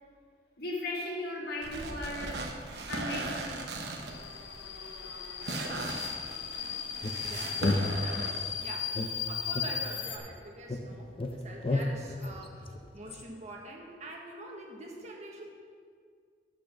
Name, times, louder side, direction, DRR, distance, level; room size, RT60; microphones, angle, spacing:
voice 1, 0.6-2.3 2.9-3.6, left 2 dB, 60° left, -2 dB, 1.9 m, -36 dB
sound 1, 1.6-8.4, right 2 dB, 65° right, 1.1 m, -38 dB
Subway metro underground, 4.1-10.2, left 7 dB, 80° left, 1.0 m, -37 dB
sound 2, 7.0-8.5 8.9-10.4 10.7-13.2, left 2 dB, 30° left, 0.6 m, -33 dB
voice 2, 7.2-15.5, right 2 dB, 40° right, 0 dB, 1.3 m, -45 dB
8.3 x 6.3 x 6.6 m, 2.1 s
head